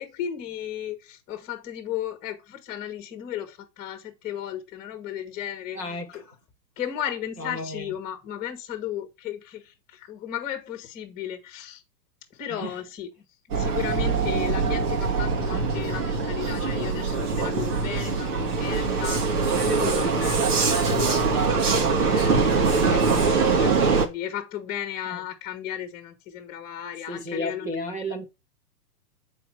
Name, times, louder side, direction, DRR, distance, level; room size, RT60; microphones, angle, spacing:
voice 1, 0.0-6.2 6.8-11.8 12.3-13.1 13.5-27.8, left 10 dB, 20° left, 1.4 m, -35 dB
voice 2, 5.7-6.2 7.4-7.9 12.5-12.7 20.0-20.1 25.0-25.2 27.1-28.2, left 1 dB, 15° right, 0.4 m, -33 dB
Vehicle, 13.5-24.1, right 4 dB, 65° right, 2.3 m, -23 dB
7.7 x 4.6 x 4.6 m
hypercardioid pair, 150°, 48 cm